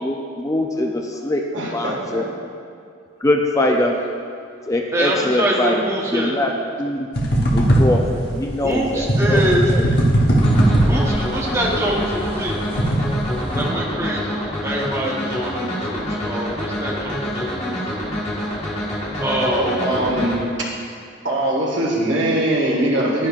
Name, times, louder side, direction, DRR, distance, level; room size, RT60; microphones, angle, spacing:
voice 1, 0.0-2.2 3.2-4.0 4.7-6.5 6.8-7.1 7.5-9.4 9.7-9.9, left 1 dB, 15° left, 2 dB, 0.4 m, -22 dB
voice 2, 1.5-2.2 19.4-20.7 21.2-23.3, right 1 dB, 75° right, -3 dB, 1.6 m, -21 dB
voice 3, 4.9-6.4 8.6-9.7 10.9-12.7 13.5-17.6 19.2-19.8, equal, 15° right, -3 dB, 0.9 m, -24 dB
sound 1, 7.2-13.6, right 1 dB, 55° left, 1.1 m, -19 dB
sound 2, 10.4-20.4, equal, 35° left, 1.4 m, -27 dB
10.5 x 10.5 x 2.4 m, 2.3 s
head